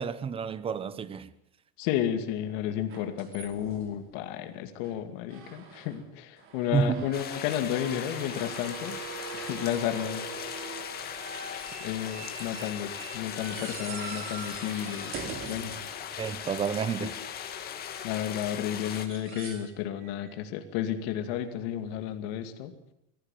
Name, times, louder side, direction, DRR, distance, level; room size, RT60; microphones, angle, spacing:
voice 1, 0.0-1.3 6.7-7.1 16.2-17.2, right 6 dB, 20° right, 0.8 m, -30 dB
voice 2, 1.8-9.0 9.3-10.3 11.8-15.2 15.5-15.7 17.0-17.1 18.0-22.7, left 10 dB, 70° left, 2.4 m, -32 dB
sound 1, 2.9-4.2 4.8-5.0 5.3-6.0 6.4-16.6 18.7-19.7 20.0-20.3 22.1-22.2, right 6 dB, 45° right, 3.1 m, -43 dB
sound 2, 7.1-19.0, left 9 dB, 30° left, 2.1 m, -39 dB
19.5 x 14.5 x 9.2 m
cardioid pair, 160°, 30 cm